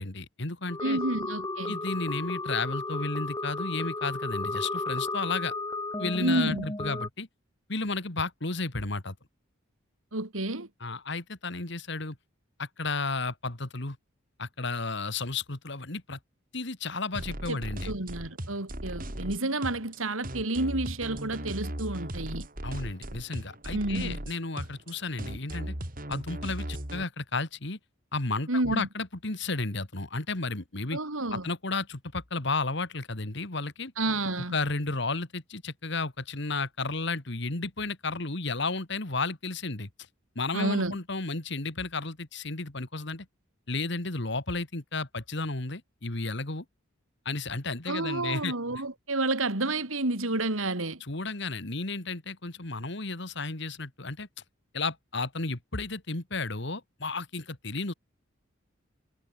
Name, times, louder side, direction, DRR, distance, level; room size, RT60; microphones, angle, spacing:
voice 1, 0.0-1.0 1.7-5.5 6.0-7.3 7.7-9.2 10.8-12.2 12.6-14.0 14.4-16.2 16.5-17.9 22.6-25.8 26.1-27.8 28.1-31.0 31.3-33.9 34.5-39.9 40.4-43.3 43.7-46.6 47.3-48.5 51.1-54.3 54.7-57.9, left 3 dB, 60° left, 2.2 m, -33 dB
sound 1, 0.7-7.1, left 2 dB, 20° left, 3.5 m, -34 dB
voice 2, 0.8-1.8 6.2-6.7 10.1-10.7 17.5-17.6 17.8-22.5 23.7-24.2 28.5-28.9 30.9-31.5 34.0-34.5 40.5-41.0 47.9-51.0, right 2 dB, 85° right, 3.4 m, -30 dB
sound 2, 17.1-27.0, right 1 dB, 45° right, 3.9 m, -37 dB
head